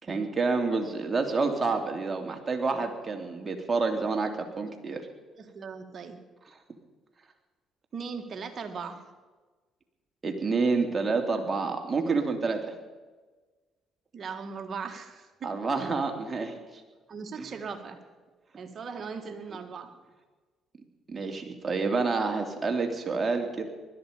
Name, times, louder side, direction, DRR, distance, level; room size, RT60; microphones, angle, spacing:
voice 1, 0.0-5.0 10.2-12.7 15.4-16.6 17.4-17.5 21.1-23.6, right 4 dB, 35° right, 3 dB, 3.0 m, -28 dB
voice 2, 5.4-6.2 7.9-9.1 14.1-15.6 17.1-18.0 18.6-20.0, right 5 dB, 50° right, 6 dB, 2.1 m, -39 dB
20.0 x 13.0 x 5.3 m, 1.3 s
supercardioid pair, 65°, 0 cm